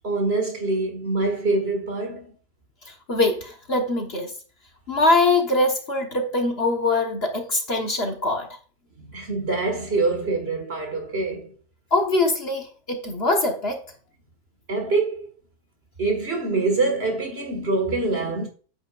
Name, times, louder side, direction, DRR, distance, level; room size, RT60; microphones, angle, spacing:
voice 1, 0.0-2.3 9.1-11.6 14.7-15.3 16.0-18.5, right 3 dB, 40° right, 1.9 m, -25 dB
voice 2, 2.8-4.3 4.9-8.5 11.9-13.8, left 2 dB, 45° left, 1.4 m, -23 dB
9.1 x 8.2 x 2.5 m
omnidirectional pair, 1.6 m